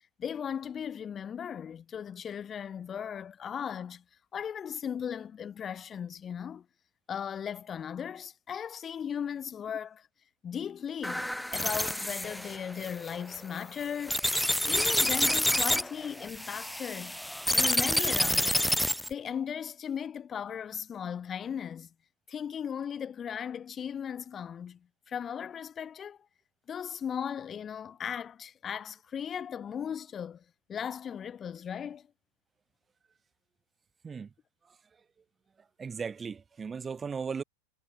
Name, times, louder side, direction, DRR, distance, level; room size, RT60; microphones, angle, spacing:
voice 1, 0.2-4.0 4.3-6.6 7.1-10.1 10.4-14.3 14.6-17.2 17.5-18.7 19.1-21.9 22.3-26.2 26.7-30.4 30.7-32.1, left 8 dB, 25° left, 3.3 m, -37 dB
sound 1, 11.0-19.1, left 1 dB, ahead, 2.5 m, -28 dB
voice 2, 35.8-37.4, right 5 dB, 15° right, 5.6 m, -36 dB
figure-of-eight pair, 90°, 0 cm